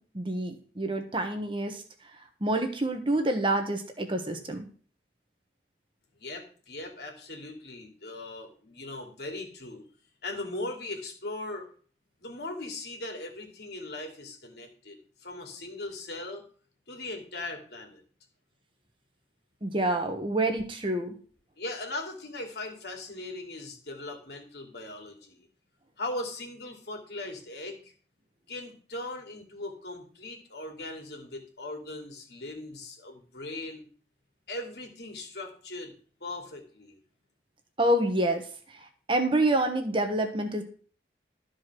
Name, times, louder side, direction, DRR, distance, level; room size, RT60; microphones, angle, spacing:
voice 1, 0.1-1.8 2.4-4.7 19.6-21.2 37.8-38.4 38.7-40.6, right 1 dB, 30° right, 5 dB, 1.3 m, -27 dB
voice 2, 6.2-9.8 10.2-11.7 12.2-16.4 16.9-18.0 21.6-25.5 26.0-27.9 28.5-33.8 34.5-35.9 36.2-37.0, left 2 dB, 70° left, 2 dB, 2.7 m, -39 dB
13.0 x 5.0 x 6.1 m, 0.43 s
head